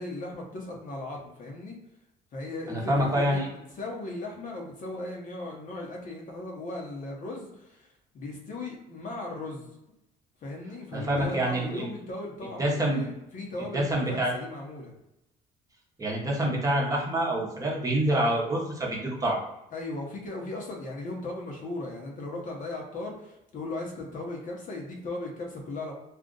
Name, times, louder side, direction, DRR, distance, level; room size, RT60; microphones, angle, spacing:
voice 1, 0.0-1.8 2.3-9.8 10.4-14.9 19.7-25.9, left 2 dB, 50° left, 0 dB, 1.0 m, -37 dB
voice 2, 2.7-3.5 10.9-11.9 12.6-13.1 13.7-14.4 16.0-19.4, right 1 dB, 20° right, -2 dB, 0.9 m, -26 dB
2.6 x 2.4 x 3.8 m, 0.87 s
cardioid pair, 110°, 17 cm